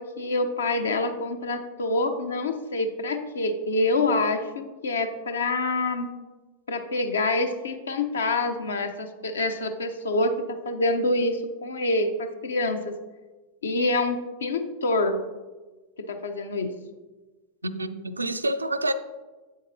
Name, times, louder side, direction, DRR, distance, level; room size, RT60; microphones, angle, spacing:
voice 1, 0.0-6.1 6.7-12.9 13.6-15.2 16.1-16.7, left 2 dB, 70° left, 7 dB, 0.7 m, -26 dB
voice 2, 17.6-18.9, right 1 dB, 80° right, 11 dB, 0.4 m, -28 dB
8.3 x 7.6 x 2.7 m, 1.2 s
figure-of-eight pair, 90°, 0 cm